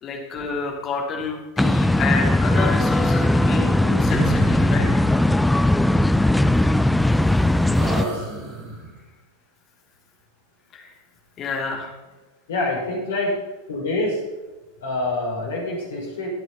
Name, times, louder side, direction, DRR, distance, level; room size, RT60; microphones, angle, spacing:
voice 1, 0.0-5.0 10.7-10.9 11.4-11.9, left 5 dB, 30° left, 1 dB, 2.9 m, -29 dB
sound 1, 1.6-8.0, left 1 dB, 5° left, 0.4 m, -19 dB
sound 2, 4.0-5.2 6.5-7.3 7.7-9.0, right 2 dB, 35° right, 4.3 m, -33 dB
voice 2, 7.9-8.3 12.5-13.4 13.7-14.2 14.8-16.3, left 2 dB, 60° left, -1 dB, 5.5 m, -26 dB
22.5 x 7.9 x 4.2 m, 1.1 s
figure-of-eight pair, 90°, 0 cm